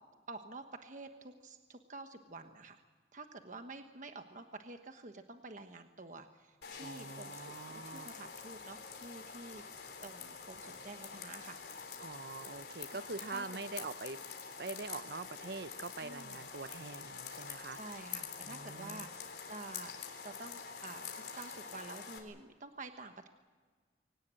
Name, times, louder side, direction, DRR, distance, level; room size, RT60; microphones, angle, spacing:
voice 1, 0.3-2.8 3.1-9.6 10.0-11.8 13.3-13.5 13.7-13.9 16.0-16.7 17.7-19.9 20.2-23.3, right 3 dB, 45° right, 6 dB, 1.3 m, -49 dB
sound 1, 6.6-22.2, left 6 dB, 60° left, 3.7 m, -47 dB
voice 2, 6.8-8.1 12.0-14.2 14.6-17.8 18.4-19.1, right 3 dB, 60° right, 15 dB, 0.7 m, -44 dB
24.0 x 18.5 x 8.9 m, 1.5 s
head